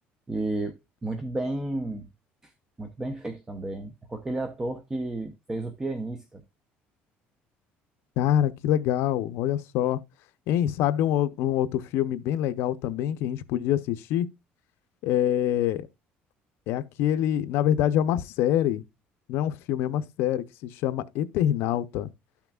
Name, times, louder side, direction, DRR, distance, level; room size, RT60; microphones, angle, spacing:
voice 1, 0.3-2.1 2.4-2.5 2.8-6.4, right 2 dB, 15° right, 0.7 m, -32 dB
voice 2, 8.2-10.0 10.5-14.3 15.0-15.9 16.7-18.8 19.3-22.1, left 11 dB, 75° left, 0.6 m, -25 dB
13.0 x 5.8 x 2.3 m
cardioid pair, 150°, 4 cm